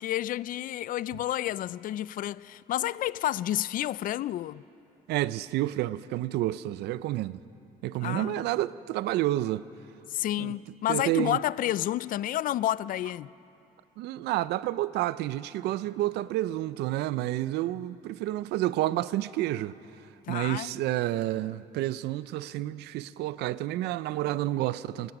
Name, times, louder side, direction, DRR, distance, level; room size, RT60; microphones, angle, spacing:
voice 1, 0.0-4.6 8.0-8.4 10.1-13.3 20.3-20.7, left 13 dB, 55° left, 0.4 m, -30 dB
voice 2, 5.1-7.4 7.8-9.6 10.4-10.6 10.9-11.4 14.0-19.7 20.3-25.1, right 15 dB, 80° right, 0.5 m, -29 dB
25.5 x 17.5 x 6.0 m
cardioid pair, 110°, 17 cm